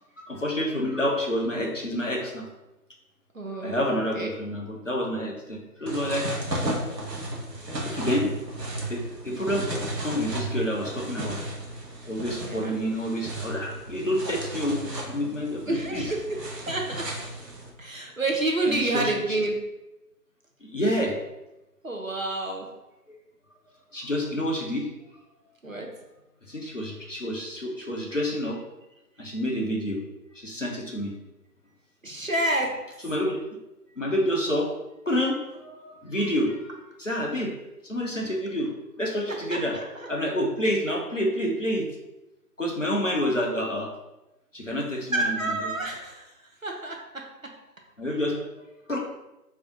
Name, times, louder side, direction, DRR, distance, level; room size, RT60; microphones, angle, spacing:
voice 1, 0.3-2.5 3.6-6.3 7.8-8.3 8.9-9.7 10.0-11.4 12.1-16.1 18.7-19.1 20.6-21.2 23.9-24.9 26.5-28.6 29.2-30.0 30.3-31.1 33.0-33.4 34.0-34.7 35.1-37.5 37.8-38.7 39.0-39.8 40.1-41.9 42.6-43.9 44.5-45.7 48.0-49.0, equal, 55° left, -1 dB, 0.5 m, -28 dB
voice 2, 3.3-4.3 9.3-9.4 12.4-12.8 15.7-16.3 16.7-17.0 17.8-19.6 21.8-22.7 25.6-25.9 32.0-32.7 39.5-40.1 45.1-46.3 46.6-47.0, right 2 dB, 55° right, 1 dB, 0.5 m, -28 dB
sound 1, 5.9-17.7, right 1 dB, 85° right, 0.9 m, -34 dB
2.5 x 2.1 x 3.7 m, 0.97 s
figure-of-eight pair, 170°, 48 cm